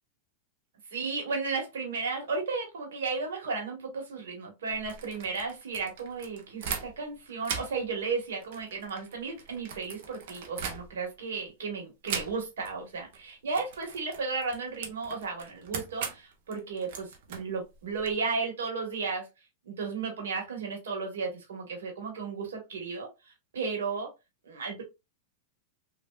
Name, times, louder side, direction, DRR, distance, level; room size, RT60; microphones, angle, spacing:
voice 1, 0.9-19.3 19.6-24.1 24.4-24.8, right 4 dB, 85° right, 1.3 m, -34 dB
sound 1, 4.7-7.1 7.4-11.2 12.0-12.7 13.0-13.2 13.5-18.1, right 6 dB, 65° right, 0.7 m, -40 dB
3.3 x 2.5 x 2.3 m
hypercardioid pair, 120°, 0 cm